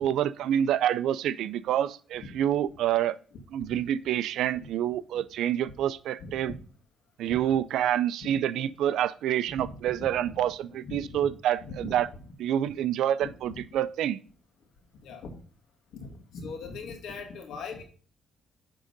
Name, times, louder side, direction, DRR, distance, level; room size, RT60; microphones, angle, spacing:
voice 1, 0.0-3.2 3.5-6.5 7.2-12.1 12.4-14.2, right 11 dB, 80° right, 17 dB, 0.4 m, -27 dB
voice 2, 6.2-6.6 7.2-7.6 8.2-8.3 9.5-9.8 10.2-10.3 10.8-11.0 11.6-12.2 13.2-13.6 15.0-15.4 15.9-17.8, left 4 dB, 75° left, 4 dB, 2.0 m, -41 dB
9.7 x 3.7 x 5.1 m, 0.41 s
cardioid pair, 90°, 0 cm